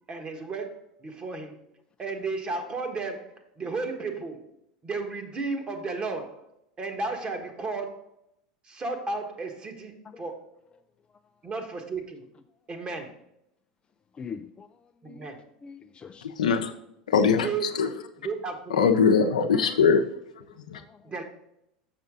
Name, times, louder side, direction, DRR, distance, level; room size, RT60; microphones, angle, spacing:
voice 1, 0.1-1.6 2.0-4.4 4.8-6.5 6.8-8.1 8.6-10.5 11.4-12.2 12.7-13.1 15.0-15.4 17.3-17.9 18.2-18.9 21.0-21.2, right 3 dB, 30° right, 1.5 m, -34 dB
voice 2, 14.1-14.7 15.1-15.3 15.6-16.3 20.7-21.1, left 6 dB, 25° left, 0.4 m, -42 dB
voice 3, 16.2-16.7 17.1-17.9 18.7-20.1 20.6-20.8, left 6 dB, 85° left, 0.7 m, -22 dB
6.7 x 6.2 x 3.7 m
hypercardioid pair, 90°, 4 cm